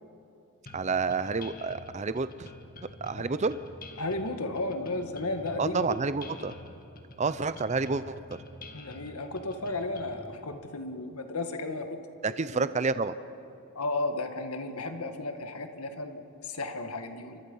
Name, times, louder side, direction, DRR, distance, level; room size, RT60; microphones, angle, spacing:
sound 1, 0.7-10.3, left 2 dB, 40° left, 1.9 m, -47 dB
voice 1, 0.7-2.5 3.0-3.6 5.6-6.5 7.2-8.2 12.2-13.1, right 4 dB, 30° right, 13 dB, 0.5 m, -29 dB
voice 2, 4.0-5.9 8.7-12.0 12.5-12.7 13.7-17.4, left 2 dB, 90° left, 6 dB, 1.7 m, -34 dB
29.0 x 24.5 x 5.5 m, 2.8 s
head